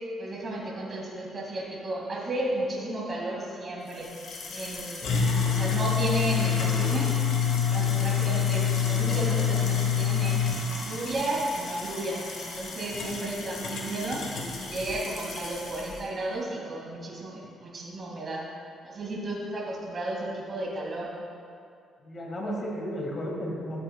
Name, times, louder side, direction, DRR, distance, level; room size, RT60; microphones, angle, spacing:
voice 1, 0.2-4.1 4.5-5.1 5.4-7.1 7.7-10.4 10.8-14.2 14.6-18.4 18.8-21.1, right 1 dB, 40° right, -3 dB, 2.2 m, -33 dB
sound 1, 3.9-15.9, left 7 dB, 70° left, 1.4 m, -28 dB
voice 2, 22.0-23.8, equal, 40° left, -1 dB, 2.0 m, -34 dB
12.5 x 8.5 x 2.4 m, 2.4 s
cardioid pair, 90°, 0 cm